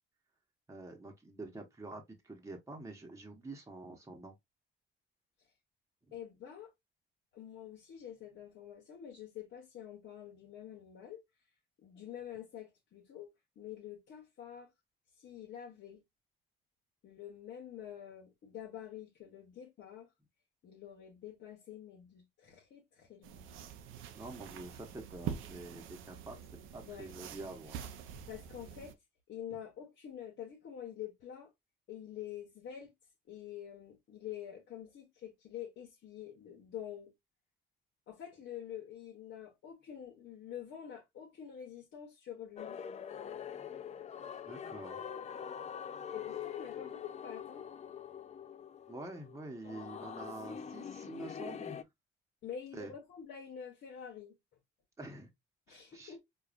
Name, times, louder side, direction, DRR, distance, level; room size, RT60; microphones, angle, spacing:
voice 1, 0.7-4.3 24.1-26.5 26.7-27.9 44.5-45.1 48.9-51.8 52.7-52.9 55.0-55.3 55.7-56.1, right 2 dB, 15° right, 1.0 m, -47 dB
voice 2, 6.1-6.7 7.3-11.2 11.8-13.3 13.6-14.7 15.2-16.0 17.0-20.1 20.6-23.4 26.8-27.1 28.3-28.9 29.3-31.5 31.9-32.9 33.3-37.1 38.1-42.8 46.1-47.6 52.4-54.3 55.7-56.2, left 9 dB, 70° left, 1.1 m, -47 dB
sound 1, 23.2-28.9, right 8 dB, 90° right, 0.6 m, -45 dB
sound 2, 42.6-51.8, left 8 dB, 35° left, 0.4 m, -44 dB
4.8 x 2.3 x 2.4 m
cardioid pair, 90°, 20 cm